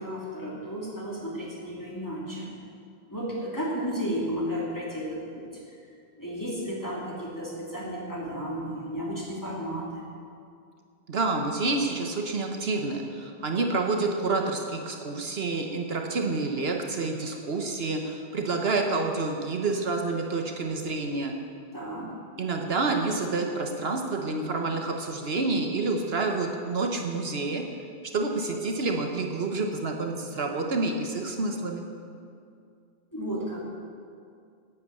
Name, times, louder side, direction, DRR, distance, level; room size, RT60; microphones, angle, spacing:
voice 1, 0.0-2.5 3.1-5.8 6.2-10.1 21.7-22.2 33.1-33.8, equal, 15° left, -4 dB, 2.9 m, -33 dB
voice 2, 11.1-21.4 22.4-27.7 28.0-31.8, right 3 dB, 70° right, 3 dB, 1.3 m, -28 dB
11.0 x 9.4 x 8.2 m, 2.3 s
omnidirectional pair, 1.1 m